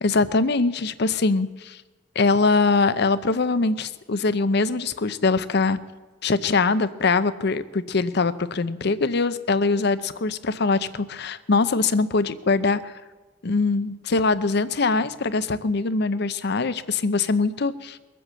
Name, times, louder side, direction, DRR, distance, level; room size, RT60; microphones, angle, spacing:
voice 1, 0.0-1.8 2.2-5.8 6.2-12.9 13.4-18.0, left 3 dB, 60° left, 13 dB, 0.7 m, -22 dB
22.0 x 7.8 x 7.6 m, 1.3 s
head